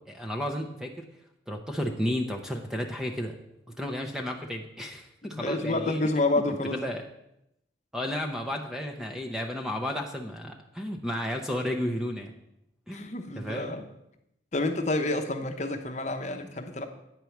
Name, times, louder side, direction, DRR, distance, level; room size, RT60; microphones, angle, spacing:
voice 1, 0.1-1.1 1.5-3.4 3.8-6.0 6.5-7.0 7.9-12.3 12.9-13.1 13.4-13.8, equal, 5° right, 3 dB, 0.6 m, -32 dB
voice 2, 5.3-6.8 12.9-13.8 14.5-16.8, left 2 dB, 40° left, 4 dB, 0.8 m, -29 dB
9.1 x 4.6 x 7.1 m, 0.83 s
head